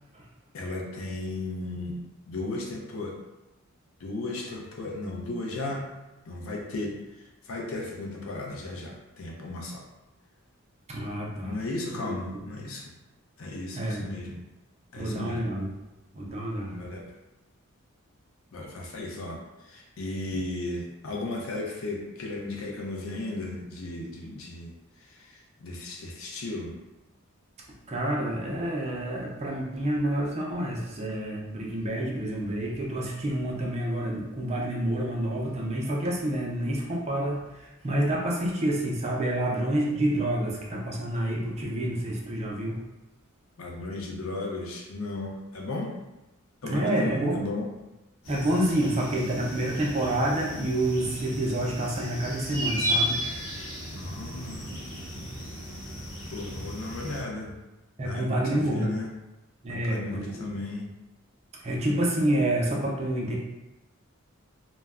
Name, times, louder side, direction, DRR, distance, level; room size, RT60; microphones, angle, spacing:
voice 1, 0.5-3.2 4.0-5.9 6.3-7.0 7.4-9.8 11.4-12.9 13.4-14.4 14.9-15.4 16.7-17.1 18.5-24.7 25.0-26.8 43.6-46.0 46.6-47.7 53.9-54.9 56.3-57.6 58.0-59.1 59.7-60.9, left 2 dB, 65° left, 0 dB, 0.5 m, -35 dB
voice 2, 10.9-11.6 12.0-12.4 13.7-14.1 15.0-15.7 16.1-16.8 18.6-18.7 27.9-42.8 46.6-47.4 48.3-53.3 58.0-59.0 59.6-60.5 61.6-63.4, right 1 dB, 30° right, -2 dB, 0.4 m, -28 dB
sound 1, 48.2-57.2, equal, 85° left, 0.9 m, -34 dB
2.2 x 2.1 x 3.4 m, 0.99 s
head